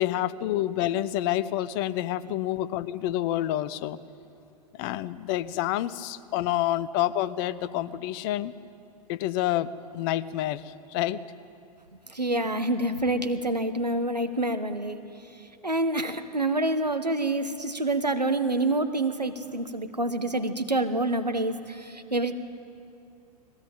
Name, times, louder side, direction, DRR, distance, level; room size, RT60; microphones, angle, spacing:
voice 1, 0.0-4.0 4.7-8.5 9.1-11.2, left 13 dB, 35° left, 16 dB, 0.8 m, -28 dB
voice 2, 12.1-15.0 15.6-22.3, right 2 dB, 90° right, 9 dB, 1.4 m, -27 dB
20.0 x 17.0 x 9.0 m, 2.6 s
figure-of-eight pair, 105°, 20 cm